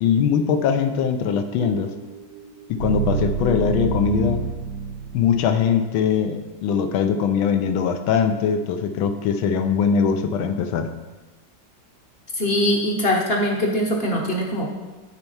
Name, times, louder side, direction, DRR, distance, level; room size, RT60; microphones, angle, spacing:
voice 1, 0.0-1.9 2.7-4.4 5.1-10.9, left 7 dB, 85° left, 7 dB, 1.5 m, -21 dB
sound 1, 1.6-5.7, right 6 dB, 55° right, 1.0 m, -28 dB
voice 2, 12.3-14.7, left 1 dB, 45° left, 0 dB, 0.8 m, -22 dB
9.2 x 4.5 x 5.5 m, 1.2 s
omnidirectional pair, 2.1 m